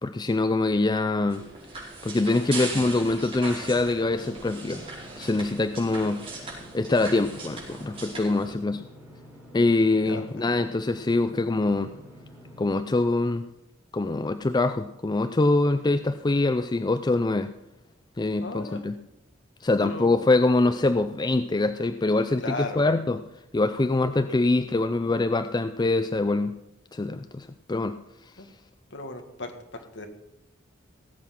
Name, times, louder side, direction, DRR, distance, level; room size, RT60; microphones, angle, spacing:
voice 1, 0.0-1.5 2.0-4.8 5.2-6.2 6.7-8.8 9.5-11.9 12.6-13.4 13.9-17.5 18.2-18.9 19.6-23.2 23.5-26.5 26.9-28.0, left 2 dB, 20° left, 10 dB, 0.4 m, -24 dB
sound 1, 1.3-8.5, right 3 dB, 30° right, 5.2 m, -39 dB
Engine / Mechanisms, 3.8-12.7, equal, 10° right, 5.0 m, -48 dB
voice 2, 18.4-18.8 19.8-20.1 22.4-22.9 28.4-28.5 28.9-30.1, left 2 dB, 60° left, 5 dB, 1.9 m, -36 dB
18.5 x 8.2 x 6.0 m, 0.87 s
head